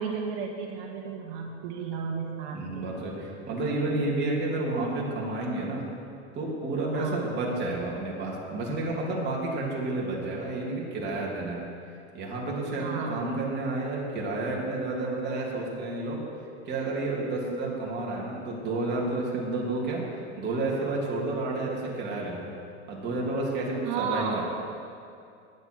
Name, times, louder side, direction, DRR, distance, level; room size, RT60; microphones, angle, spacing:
voice 1, 0.0-2.8 6.9-7.3 12.8-13.2 23.8-24.4, right 6 dB, 55° right, 0 dB, 1.7 m, -33 dB
voice 2, 2.5-5.9 6.3-11.6 12.1-16.2 16.7-20.0 20.4-22.5 22.9-24.4, right 2 dB, 30° right, -3 dB, 3.0 m, -30 dB
20.5 x 7.4 x 4.7 m, 2.5 s
supercardioid pair, 130°, 35 cm